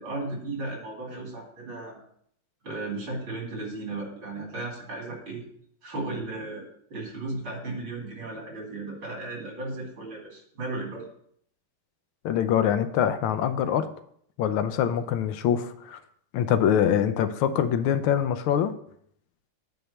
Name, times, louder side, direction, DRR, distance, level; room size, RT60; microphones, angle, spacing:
voice 1, 0.0-2.0 2.6-5.4 5.8-6.6 6.9-11.1, right 2 dB, 70° right, -2 dB, 3.3 m, -35 dB
voice 2, 12.2-13.9 14.4-16.0 16.3-18.7, left 9 dB, 85° left, 10 dB, 1.5 m, -24 dB
8.9 x 3.2 x 6.6 m, 0.67 s
omnidirectional pair, 2.3 m